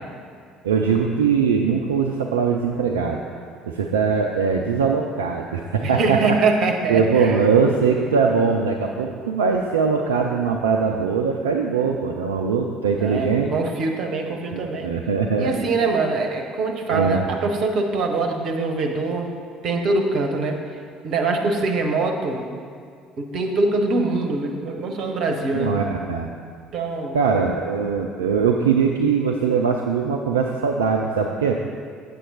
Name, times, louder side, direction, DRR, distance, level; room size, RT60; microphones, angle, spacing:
voice 1, 0.6-3.2 3.6-6.4 6.9-13.5 14.5-15.7 16.9-17.3 25.5-26.3 27.1-31.6, right 5 dB, 75° right, 1 dB, 0.4 m, -21 dB
voice 2, 5.8-7.4 12.9-14.9 15.4-19.3 19.6-20.6 21.0-22.5 23.2-25.8 26.7-27.2, right 3 dB, 50° right, 3 dB, 1.0 m, -23 dB
8.4 x 7.7 x 4.1 m, 2.1 s
figure-of-eight pair, 55°, 0 cm